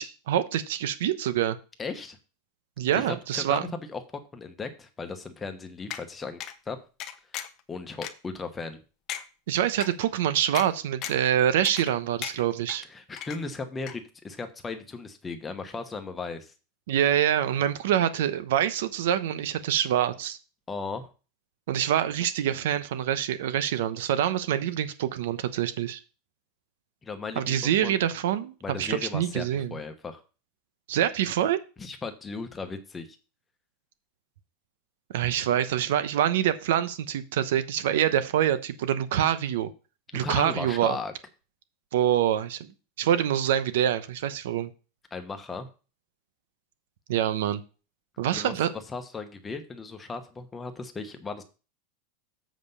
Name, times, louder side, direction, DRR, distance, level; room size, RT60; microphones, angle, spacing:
voice 1, 0.0-1.6 2.8-3.6 9.5-12.8 16.9-20.4 21.7-26.0 27.4-29.8 30.9-31.6 35.1-39.7 40.1-41.0 41.9-42.6 43.0-44.7 47.1-47.6 48.2-48.7, right 10 dB, 80° right, 12 dB, 0.9 m, -25 dB
voice 2, 1.8-2.2 2.9-6.4 6.7-6.8 7.7-8.8 12.9-16.5 20.7-21.1 27.0-27.5 27.8-28.0 28.6-30.2 31.8-33.1 40.1-41.1 45.1-45.7 48.3-48.6 48.9-51.4, left 4 dB, 15° left, 7 dB, 1.1 m, -36 dB
sound 1, 5.9-6.0 6.4-6.5 7.0-7.6 8.0-8.1 8.6-8.7 9.1-9.2 9.8-9.9 10.5-10.7 11.0-11.3 11.6-11.9 12.2-12.8 13.2-13.6 13.9-14.0, left 11 dB, 35° left, 0.8 m, -36 dB
7.8 x 5.2 x 5.5 m, 0.34 s
supercardioid pair, 145°, 0 cm